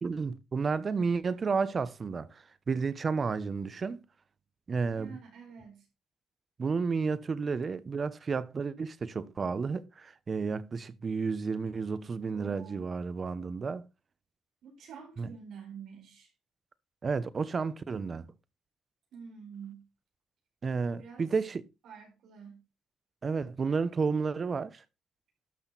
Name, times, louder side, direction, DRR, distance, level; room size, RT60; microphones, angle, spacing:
voice 1, 0.0-4.0 4.7-5.2 6.6-13.8 15.2-15.3 17.0-18.3 20.6-21.6 23.2-24.8, right 5 dB, 40° right, 1.0 m, -31 dB
voice 2, 5.0-5.9 12.3-12.8 14.6-16.3 19.1-19.9 20.9-21.3 21.8-22.7, right 6 dB, 75° right, 4.8 m, -48 dB
12.0 x 6.3 x 4.1 m
cardioid pair, 90°, 0 cm